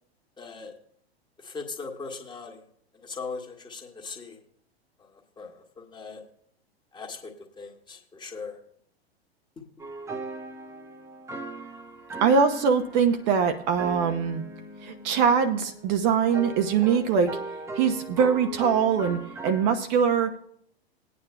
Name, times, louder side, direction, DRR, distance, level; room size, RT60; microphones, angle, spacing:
voice 1, 0.4-0.7 1.4-2.6 2.9-4.4 5.0-6.2 6.9-8.6, left 4 dB, 15° left, 2 dB, 1.7 m, -39 dB
sound 1, 9.8-19.8, right 2 dB, 10° right, 0.9 m, -39 dB
voice 2, 12.2-14.4 14.8-17.4 17.7-20.4, right 6 dB, 40° right, 6 dB, 0.9 m, -23 dB
19.0 x 9.2 x 2.2 m, 0.65 s
figure-of-eight pair, 100°, 32 cm